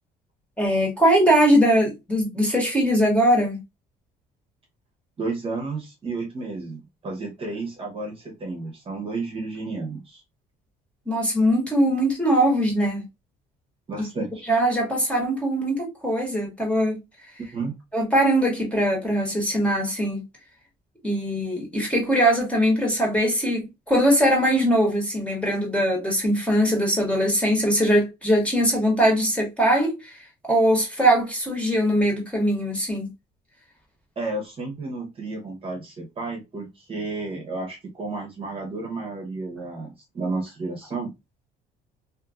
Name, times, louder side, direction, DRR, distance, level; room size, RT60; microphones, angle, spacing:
voice 1, 0.6-3.6 11.1-13.0 14.0-14.1 14.5-17.0 17.9-20.2 21.0-30.1 30.5-33.1, equal, 5° left, 1.3 m, -21 dB
voice 2, 5.2-10.2 13.9-14.4 17.5-17.7 34.2-41.1, right 3 dB, 35° right, 1.0 m, -32 dB
2.7 x 2.6 x 2.3 m
cardioid pair, 110°, 17 cm